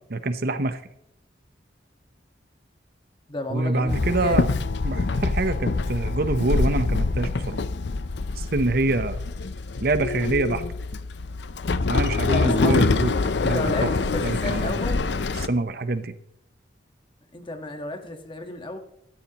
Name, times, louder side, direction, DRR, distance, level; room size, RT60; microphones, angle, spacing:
voice 1, 0.1-0.8 3.5-4.5 4.8-7.6 8.4-9.2 9.8-10.6 11.9-13.1 13.4-13.9 14.2-14.7 15.4-16.1, right 2 dB, 55° right, 11 dB, 0.9 m, -25 dB
voice 2, 3.3-4.5 12.3-13.0 13.5-15.0 17.3-18.8, left 2 dB, 30° left, 5 dB, 1.5 m, -33 dB
Walk footsteps / Chatter / Hiss, 3.9-15.5, left 3 dB, 70° left, 0.6 m, -25 dB
15.5 x 14.0 x 3.0 m, 0.75 s
head